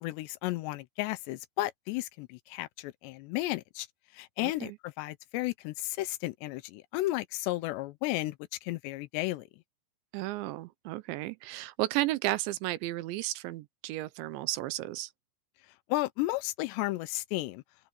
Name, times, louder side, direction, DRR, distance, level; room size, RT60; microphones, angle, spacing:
voice 1, 0.0-3.9 4.1-8.3 8.6-9.4 15.9-17.6, left 18 dB, 80° left, 2.8 m, -33 dB
voice 2, 4.4-4.8 10.1-15.1, right 17 dB, 85° right, 3.2 m, -33 dB
open air
omnidirectional pair, 5.1 m